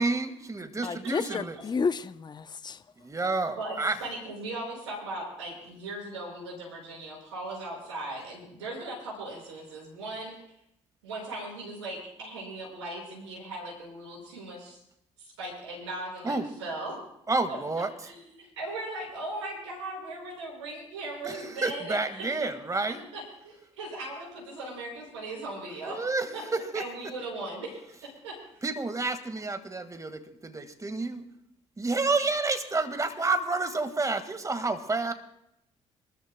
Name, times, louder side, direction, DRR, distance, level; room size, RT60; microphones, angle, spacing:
voice 1, 0.0-1.6 3.0-4.0 16.2-16.5 17.3-17.9 21.2-23.0 25.8-26.8 28.6-31.2 31.8-35.1, right 3 dB, 20° right, 1.7 m, -29 dB
voice 2, 0.8-2.8, left 5 dB, 30° left, 0.7 m, -31 dB
voice 3, 3.6-10.4 11.0-14.8 15.2-17.0 17.5-17.6 18.0-22.0 22.4-22.5 23.1-26.0 26.3-26.4 26.7-28.4, right 2 dB, 90° right, 5.5 m, -38 dB
26.5 x 13.5 x 2.2 m
hypercardioid pair, 55°, 15 cm